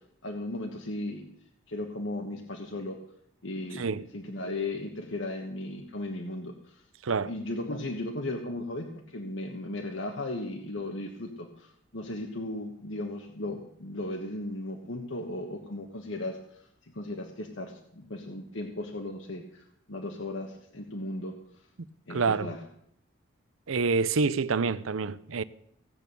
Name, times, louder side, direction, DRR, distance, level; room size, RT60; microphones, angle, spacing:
voice 1, 0.2-1.3 1.7-3.0 3.4-6.8 7.2-21.4 22.1-22.6, left 2 dB, 65° left, 1.3 m, -36 dB
voice 2, 22.1-22.5 23.7-25.4, right 4 dB, 75° right, 0.6 m, -27 dB
16.5 x 8.4 x 6.9 m
head